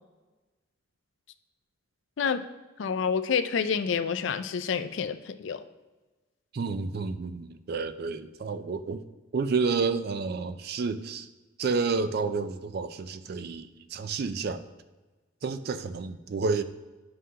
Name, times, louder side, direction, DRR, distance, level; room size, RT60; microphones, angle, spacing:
voice 1, 2.8-5.6, left 6 dB, 65° left, 11 dB, 0.4 m, -28 dB
voice 2, 6.5-9.0 9.3-11.3 11.6-14.6 15.4-16.6, right 4 dB, 50° right, 11 dB, 0.4 m, -30 dB
9.5 x 5.6 x 2.8 m, 1.2 s
head